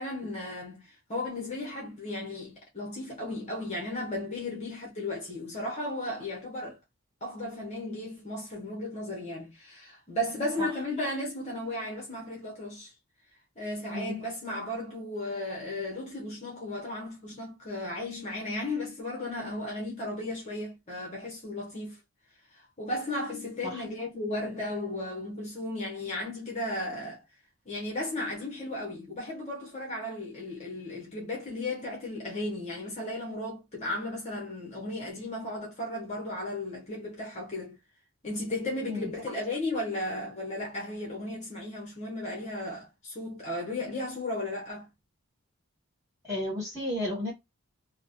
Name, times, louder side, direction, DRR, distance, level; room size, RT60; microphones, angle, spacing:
voice 1, 0.0-6.8 7.2-12.9 13.6-22.0 22.8-27.2 27.7-37.8 38.2-44.9, left 1 dB, 30° left, 0.9 m, -35 dB
voice 2, 46.2-47.3, left 1 dB, 15° right, 1.8 m, -33 dB
3.0 x 2.1 x 2.4 m
head